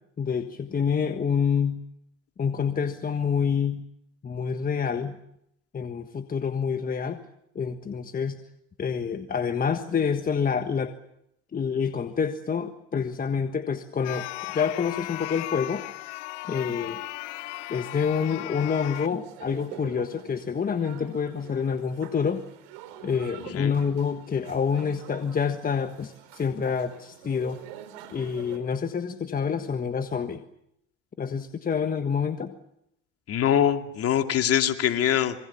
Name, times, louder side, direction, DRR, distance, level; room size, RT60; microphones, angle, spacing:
voice 1, 0.2-1.8 2.4-3.8 4.2-5.2 5.7-7.2 7.5-8.4 8.8-10.9 11.5-14.3 14.5-15.8 16.5-17.0 17.7-22.4 23.0-27.6 28.1-30.4 31.2-32.5, left 6 dB, 25° left, 8 dB, 1.5 m, -27 dB
sound 1, 14.0-19.1, left 19 dB, 80° left, 1.0 m, -36 dB
sound 2, 18.6-28.6, right 10 dB, 70° right, 4.4 m, -47 dB
voice 2, 33.3-35.4, left 10 dB, 45° left, 6 dB, 2.5 m, -23 dB
27.0 x 23.5 x 7.2 m, 0.76 s
hypercardioid pair, 90°, 34 cm